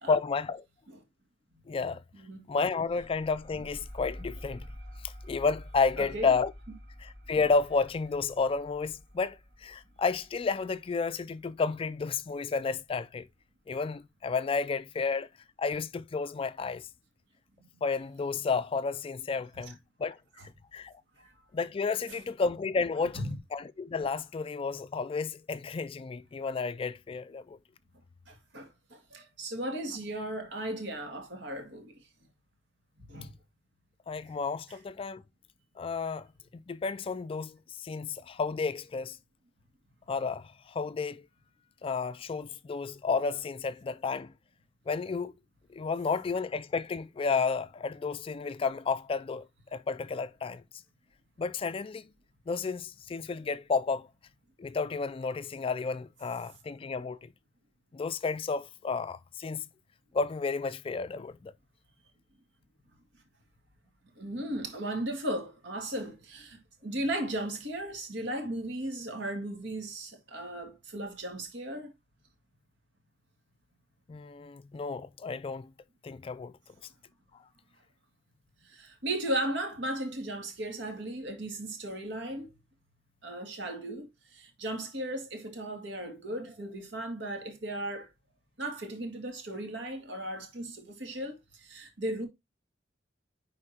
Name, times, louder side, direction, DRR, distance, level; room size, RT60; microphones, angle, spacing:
voice 1, 0.1-0.6 1.7-2.0 2.5-4.7 5.0-6.5 7.0-13.3 13.7-15.3 15.6-16.9 17.8-20.2 20.7-20.9 21.5-23.2 23.5-27.6 34.1-35.2 35.8-36.3 36.5-39.2 40.1-41.3 41.8-44.3 44.9-45.3 45.7-49.5 49.7-50.6 51.4-52.1 52.5-54.1 54.6-57.3 57.9-59.7 60.1-61.5 74.1-75.7 76.0-76.5, left 4 dB, 30° left, 0.3 m, -31 dB
sound 1, 2.9-12.1, equal, 60° right, 4.0 m, -48 dB
voice 2, 6.0-6.3 21.2-21.3 22.1-22.2 23.2-23.4 28.3-31.9 33.0-33.3 64.2-71.9 78.7-82.5 83.2-88.1 88.6-92.3, right 1 dB, 80° right, 2.2 m, -36 dB
9.7 x 4.3 x 2.8 m
head